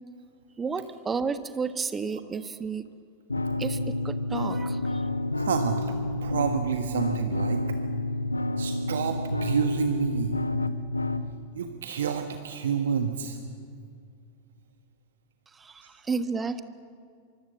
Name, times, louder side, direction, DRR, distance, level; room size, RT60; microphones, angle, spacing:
voice 1, 0.6-2.8 3.6-5.0 15.5-16.6, right 5 dB, 15° right, 12 dB, 1.3 m, -32 dB
sound 1, 3.3-11.3, left 2 dB, 80° left, 0.9 m, -29 dB
voice 2, 5.4-5.9 6.2-7.8 8.6-10.4 11.5-13.4, right 7 dB, 65° right, 7 dB, 1.4 m, -29 dB
24.0 x 24.0 x 7.5 m, 2.2 s
figure-of-eight pair, 90°, 0 cm